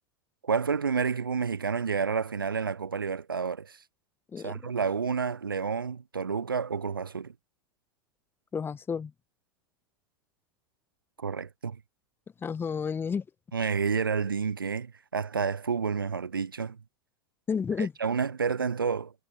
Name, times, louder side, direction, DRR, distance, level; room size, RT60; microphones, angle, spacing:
voice 1, 0.4-3.8 4.4-7.3 11.2-11.8 13.5-16.8 17.8-19.1, right 6 dB, 80° right, 0.7 m, -30 dB
voice 2, 8.5-9.1 12.4-13.2 17.5-17.9, left 6 dB, 20° left, 1.5 m, -31 dB
figure-of-eight pair, 85°, 11 cm